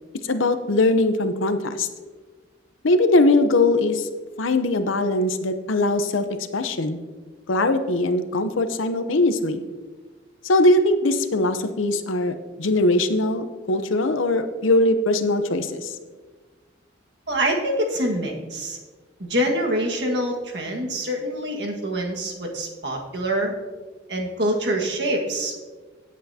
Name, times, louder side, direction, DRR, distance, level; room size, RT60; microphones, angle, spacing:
voice 1, 0.2-1.9 2.8-4.1 4.4-6.3 6.5-7.0 7.5-9.6 10.4-15.9, left 2 dB, 85° left, 9 dB, 0.8 m, -21 dB
voice 2, 17.3-18.8 19.2-23.5 24.1-25.6, right 1 dB, 55° right, 0 dB, 1.7 m, -25 dB
17.0 x 8.3 x 2.8 m, 1.4 s
head